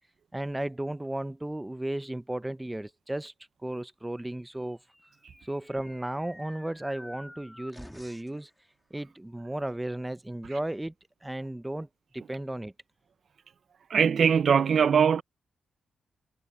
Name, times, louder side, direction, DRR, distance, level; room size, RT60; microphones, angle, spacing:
voice 1, 0.3-3.3 3.6-4.8 5.4-8.5 8.9-10.9 11.2-11.9 12.1-12.7, right 1 dB, 10° right, 0.8 m, -34 dB
sound 1, 4.8-8.4, left 1 dB, 5° left, 3.0 m, -50 dB
voice 2, 13.9-15.2, right 7 dB, 60° right, 0.6 m, -21 dB
supercardioid pair, 60°, 0 cm